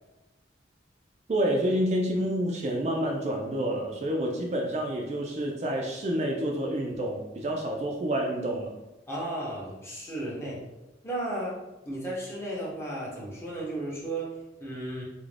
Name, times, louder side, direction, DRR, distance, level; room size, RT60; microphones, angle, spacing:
voice 1, 1.3-8.7, right 1 dB, 40° right, 0 dB, 0.3 m, -28 dB
voice 2, 9.1-10.6 11.0-11.6 11.8-15.0, right 1 dB, 15° left, -5 dB, 0.6 m, -34 dB
2.4 x 2.1 x 3.2 m, 1.0 s
head